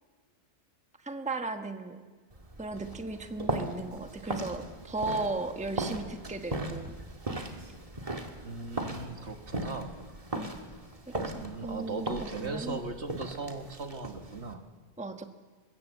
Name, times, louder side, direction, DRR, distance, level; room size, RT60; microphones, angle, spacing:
voice 1, 1.0-2.0 2.6-6.9 10.3-10.5 11.1-12.8 15.0-15.2, right 2 dB, 5° right, 6 dB, 1.2 m, -36 dB
sound 1, 2.3-14.5, right 2 dB, 30° right, 2.0 m, -38 dB
voice 2, 8.4-9.9 11.4-14.6, right 3 dB, 70° right, 6 dB, 2.0 m, -38 dB
23.5 x 21.0 x 8.2 m, 1.4 s
omnidirectional pair, 1.2 m